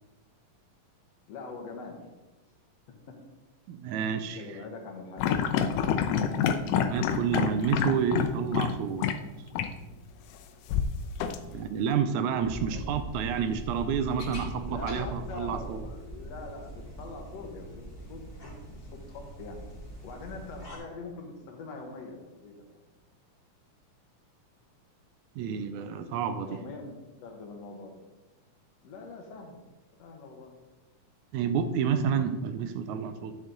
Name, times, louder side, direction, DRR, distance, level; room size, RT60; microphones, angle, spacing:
voice 1, 1.3-2.1 3.1-3.2 4.4-5.5 12.7-12.9 14.7-19.6 20.0-22.8 26.5-28.0 28.8-29.6 30.0-30.5, left 3 dB, 65° left, 3 dB, 2.0 m, -43 dB
voice 2, 3.7-4.4 6.7-9.1 11.5-15.8 25.4-26.6 31.3-33.4, right 7 dB, 80° right, 10 dB, 1.8 m, -29 dB
sound 1, 5.2-8.7 9.0-9.1 9.5-9.7 10.7-11.8, left 8 dB, 85° left, 2.2 m, -27 dB
sound 2, 12.4-20.8, right 1 dB, 20° left, 1.8 m, -41 dB
10.0 x 6.3 x 3.8 m, 1.1 s
omnidirectional pair, 3.7 m